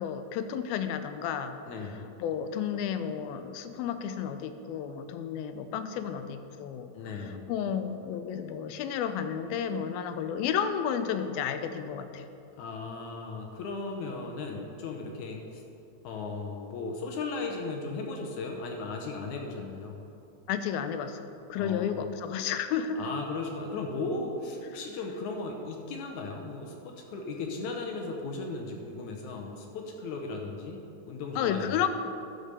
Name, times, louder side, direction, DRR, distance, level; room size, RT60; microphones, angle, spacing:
voice 1, 0.0-1.6 2.2-6.9 7.5-12.3 20.5-23.1 31.4-31.9, left 8 dB, 90° left, 9 dB, 2.5 m, -32 dB
voice 2, 1.6-2.1 6.9-7.5 12.6-15.6 16.0-20.0 21.6-22.1 23.0-30.8 31.1-31.9, left 3 dB, 70° left, 1 dB, 1.9 m, -36 dB
12.0 x 5.1 x 6.6 m, 2.8 s
omnidirectional pair, 4.2 m